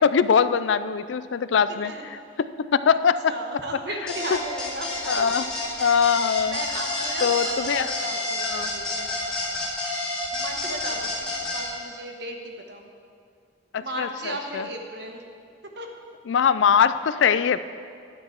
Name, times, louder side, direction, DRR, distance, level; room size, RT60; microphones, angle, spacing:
voice 1, 0.0-1.9 2.7-3.2 5.1-5.5 5.8-6.6 7.2-7.9 8.5-8.7 13.7-14.6 16.3-17.6, left 7 dB, 70° left, 14 dB, 0.4 m, -22 dB
voice 2, 1.7-2.4 3.2-6.0 6.4-9.2 10.3-12.9 13.7-15.2 15.8-15.9, right 2 dB, 60° right, 3 dB, 1.2 m, -36 dB
sound 1, 4.1-11.6, left 2 dB, 5° left, 2.6 m, -29 dB
11.5 x 9.5 x 4.5 m, 2.3 s
head